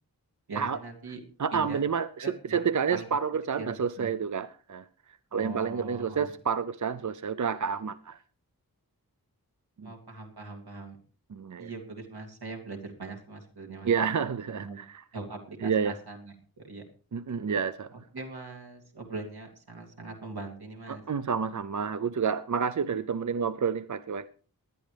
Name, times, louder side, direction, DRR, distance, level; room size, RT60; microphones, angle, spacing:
voice 1, 0.5-1.2 1.5-1.9 2.2-3.1 3.6-4.1 5.3-6.3 9.8-11.0 11.6-13.9 14.5-14.8 15.1-16.8 18.1-21.0, right 3 dB, 80° right, 2 dB, 2.8 m, -41 dB
voice 2, 1.4-4.9 5.3-8.2 9.8-9.9 11.3-11.7 13.8-15.0 15.6-15.9 17.1-17.9 20.9-24.3, right 6 dB, 50° right, 13 dB, 0.6 m, -29 dB
19.5 x 11.5 x 3.4 m, 0.41 s
wide cardioid pair, 65°, 37 cm